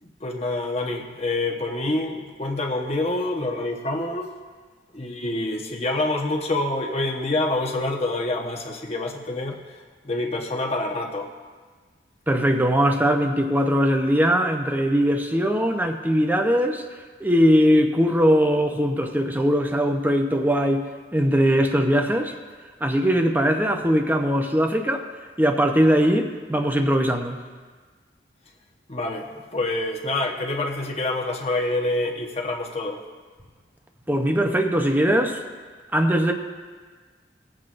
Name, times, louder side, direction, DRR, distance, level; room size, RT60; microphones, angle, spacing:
voice 1, 0.0-4.3 4.9-9.8 10.0-11.3 28.9-33.0, left 2 dB, 35° left, 1 dB, 1.1 m, -27 dB
voice 2, 12.3-16.8 17.2-20.9 21.1-22.3 22.8-25.0 25.4-27.4 34.1-35.4 35.9-36.3, equal, 10° right, 4 dB, 0.7 m, -20 dB
20.0 x 7.6 x 2.6 m, 1.5 s
head